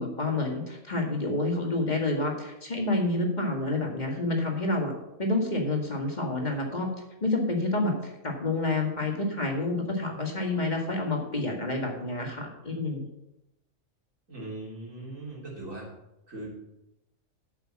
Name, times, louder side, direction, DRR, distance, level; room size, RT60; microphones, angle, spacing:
voice 1, 0.0-4.9 5.2-6.9 7.2-13.0, left 2 dB, 35° left, 1 dB, 2.0 m, -28 dB
voice 2, 14.3-15.9 16.3-16.5, right 2 dB, 75° right, -4 dB, 3.9 m, -39 dB
8.1 x 7.1 x 7.3 m, 0.89 s
omnidirectional pair, 1.4 m